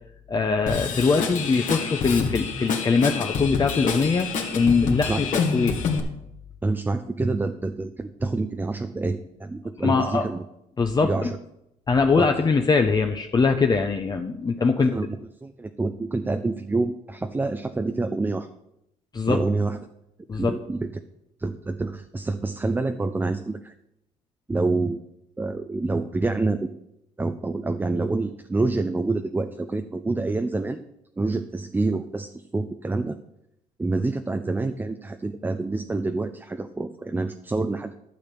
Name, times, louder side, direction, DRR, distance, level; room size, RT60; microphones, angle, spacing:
voice 1, 0.3-5.8 9.8-10.3 10.8-11.3 11.9-15.0 19.1-19.4 20.3-20.6, left 4 dB, 30° left, 4 dB, 0.8 m, -22 dB
Drum kit / Drum, 0.7-6.0, left 5 dB, 60° left, 2.0 m, -27 dB
voice 2, 6.6-10.4 11.0-11.4 12.2-12.3 14.9-18.5 19.3-19.8 20.3-20.9 21.4-23.7 24.5-25.0 25.4-26.7 27.2-30.8 31.2-33.2 33.8-37.9, right 3 dB, 15° right, 7 dB, 0.6 m, -27 dB
12.0 x 6.5 x 5.4 m, 0.82 s
cardioid pair, 90°, 15 cm